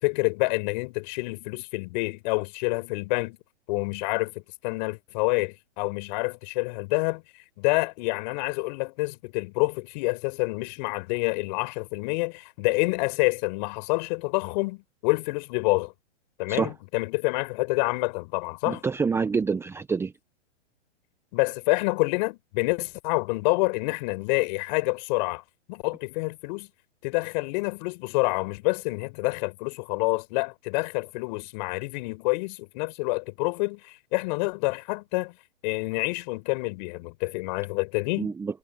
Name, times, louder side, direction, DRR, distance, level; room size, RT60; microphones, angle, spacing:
voice 1, 0.0-3.4 3.7-7.2 7.6-15.9 16.4-18.8 21.3-25.4 25.7-26.7 27.0-35.3 35.6-38.3, left 27 dB, 40° left, 4.9 m, -27 dB
voice 2, 18.7-20.1 38.2-38.6, right 5 dB, 5° right, 1.0 m, -27 dB
hypercardioid pair, 135°, 36 cm